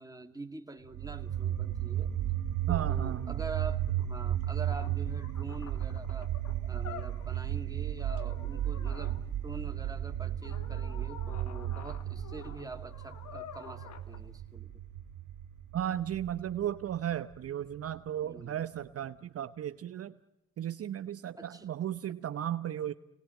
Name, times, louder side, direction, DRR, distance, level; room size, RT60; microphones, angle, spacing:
voice 1, 0.0-2.1 2.7-6.3 6.7-14.7 18.2-18.6 21.4-21.7, right 3 dB, 10° right, 5 dB, 2.4 m, -45 dB
sound 1, 0.9-17.9, right 11 dB, 85° right, 1.7 m, -34 dB
voice 2, 2.7-3.4 15.7-20.1 20.6-22.9, right 10 dB, 50° right, 11 dB, 0.8 m, -35 dB
sound 2, 4.4-4.5 4.7-7.4 8.0-9.2 10.4-14.2, left 8 dB, 65° left, 2.4 m, -49 dB
27.0 x 19.0 x 9.1 m, 0.98 s
cardioid pair, 90°, 30 cm